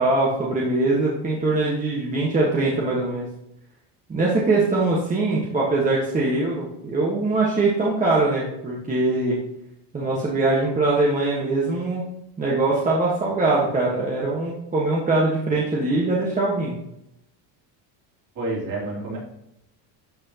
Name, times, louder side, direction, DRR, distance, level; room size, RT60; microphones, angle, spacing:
voice 1, 0.0-3.3 4.1-9.4 9.9-12.1 12.4-16.8, right 2 dB, 15° right, -4 dB, 1.4 m, -22 dB
voice 2, 18.3-19.2, right 2 dB, 40° right, -4 dB, 3.5 m, -28 dB
12.0 x 6.2 x 2.9 m, 0.81 s
cardioid pair, 155°, 45 cm